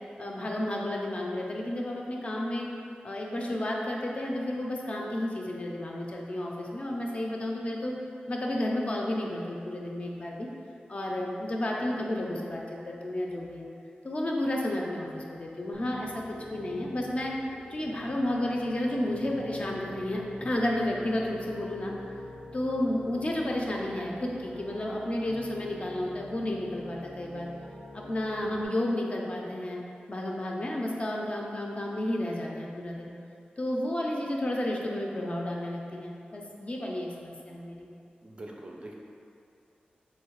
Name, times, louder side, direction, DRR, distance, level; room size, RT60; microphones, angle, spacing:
voice 1, 0.2-2.7 3.0-7.9 8.3-10.5 10.9-13.7 14.0-16.2 16.5-17.3 17.7-21.9 22.5-27.5 27.9-29.8 30.1-33.1 33.6-37.9, left 1 dB, 40° left, -1 dB, 0.4 m, -32 dB
Piano, 15.7-28.6, left 1 dB, 85° right, 0.6 m, -46 dB
voice 2, 38.2-38.9, right 1 dB, 35° right, -1 dB, 0.4 m, -43 dB
3.1 x 2.8 x 2.9 m, 2.6 s
wide cardioid pair, 80°, 3 cm